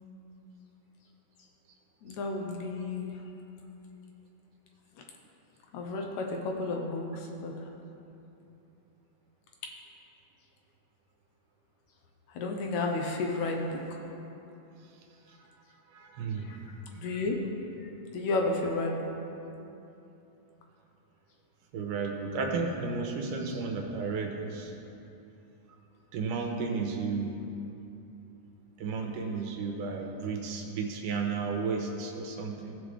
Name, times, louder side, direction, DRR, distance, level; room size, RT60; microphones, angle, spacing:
voice 1, 2.0-3.2 5.7-7.5 12.3-14.0 16.4-17.4 18.1-19.0, left 3 dB, 70° left, 1 dB, 2.0 m, -32 dB
voice 2, 15.9-16.5 21.7-24.7 26.1-27.3 28.8-32.7, right 4 dB, 85° right, 2 dB, 2.4 m, -33 dB
16.0 x 6.2 x 3.3 m, 2.9 s
omnidirectional pair, 3.7 m